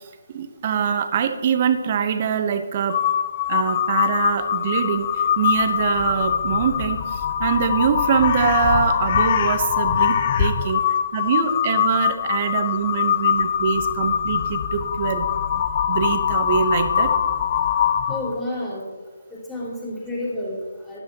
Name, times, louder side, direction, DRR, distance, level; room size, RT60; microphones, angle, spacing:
voice 1, 0.3-3.0 3.5-10.8 11.1-15.6 15.9-17.1, right 7 dB, 35° right, 8 dB, 1.1 m, -24 dB
Crow, 2.9-18.4, left 8 dB, 35° left, 0.6 m, -22 dB
voice 2, 18.1-18.9 19.4-21.0, left 1 dB, 10° left, -9 dB, 3.6 m, -30 dB
13.0 x 10.5 x 3.0 m, 1.5 s
figure-of-eight pair, 150°, 0 cm